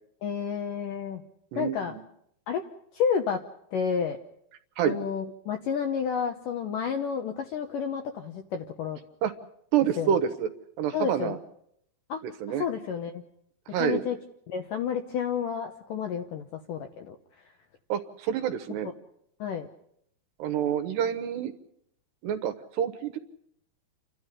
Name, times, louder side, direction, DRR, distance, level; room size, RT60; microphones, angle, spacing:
voice 1, 0.2-1.2 1.6-1.9 2.5-2.6 2.9-3.4 3.7-4.2 4.8-9.0 10.0-10.2 10.9-11.4 12.1-12.2 12.6-13.2 13.8-14.2 14.5-17.2 19.4-19.7, left 7 dB, 75° left, 6 dB, 2.0 m, -30 dB
voice 2, 1.5-2.0 4.8-5.0 9.2-9.3 9.7-10.5 10.8-11.4 12.2-12.6 13.7-14.0 17.9-18.9 20.4-21.5 22.2-23.2, right 9 dB, 75° right, 9 dB, 3.2 m, -27 dB
29.0 x 12.5 x 10.0 m, 0.74 s
omnidirectional pair, 5.2 m